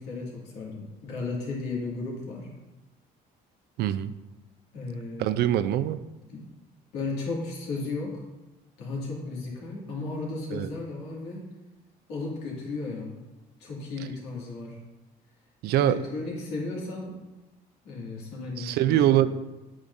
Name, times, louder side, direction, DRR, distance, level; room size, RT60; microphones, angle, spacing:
voice 1, 0.0-2.5 4.7-5.3 6.3-6.4 6.9-8.2 8.8-11.5 12.1-13.2 13.6-14.8 15.8-17.2 17.8-19.2, left 3 dB, 85° left, -4 dB, 2.3 m, -34 dB
voice 2, 3.8-4.1 5.2-6.0 10.5-10.7 15.6-16.0 18.6-19.3, right 12 dB, 75° right, 14 dB, 0.4 m, -23 dB
8.7 x 6.2 x 2.7 m, 1.1 s
cardioid pair, 110°, 17 cm